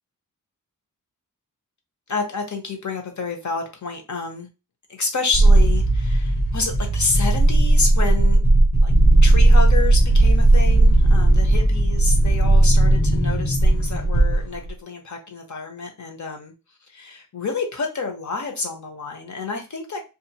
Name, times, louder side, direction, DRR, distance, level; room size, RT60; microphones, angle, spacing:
voice 1, 2.1-4.5 4.9-8.4 8.8-8.9 9.2-16.5 16.9-20.0, left 4 dB, 60° left, 3 dB, 0.8 m, -29 dB
sound 1, 5.3-14.7, right 2 dB, 80° left, 1.5 m, -16 dB
2.5 x 2.4 x 2.8 m, 0.29 s
wide cardioid pair, 75°, 33 cm